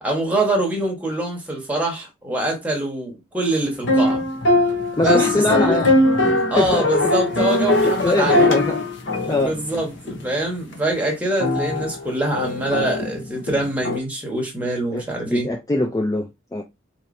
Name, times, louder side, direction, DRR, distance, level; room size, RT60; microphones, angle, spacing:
voice 1, 0.0-4.2 5.0-5.8 6.5-8.5 9.2-15.5, right 1 dB, 10° right, 1.1 m, -24 dB
sound 1, 3.8-10.3 10.7-10.8 11.4-14.0, left 2 dB, 70° left, 1.0 m, -20 dB
voice 2, 5.0-5.9 6.6-6.9 7.8-8.8 9.3-9.6 14.6-16.6, left 2 dB, 15° left, 0.3 m, -23 dB
4.2 x 3.0 x 2.6 m
head